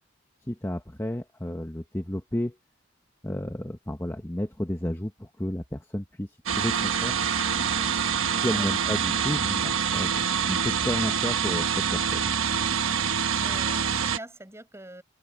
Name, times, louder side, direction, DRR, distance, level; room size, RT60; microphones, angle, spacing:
voice 1, 0.5-2.6 3.2-7.2 8.4-12.3, left 1 dB, 15° left, 1.1 m, -32 dB
sound 1, 6.5-14.2, right 7 dB, 85° right, 1.3 m, -26 dB
voice 2, 7.5-8.0 8.3-9.0 12.4-12.8 13.4-15.0, right 1 dB, 15° right, 6.1 m, -44 dB
head